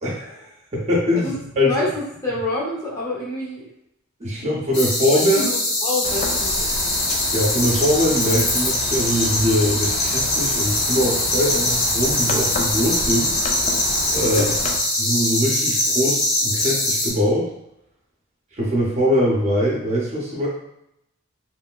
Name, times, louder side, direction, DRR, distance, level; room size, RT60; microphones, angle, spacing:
voice 1, 0.0-1.7 4.2-5.5 7.3-13.3 14.1-14.4 15.0-17.5 18.5-20.5, equal, 30° right, -4 dB, 0.6 m, -22 dB
voice 2, 1.7-3.7 5.1-6.7 11.6-11.8 14.2-14.5, left 2 dB, 15° left, -5 dB, 0.7 m, -28 dB
sound 1, 4.7-17.1, left 1 dB, 65° left, 1.3 m, -22 dB
sound 2, 6.0-14.8, left 2 dB, 35° left, 0.3 m, -31 dB
3.1 x 2.7 x 2.2 m, 0.80 s
head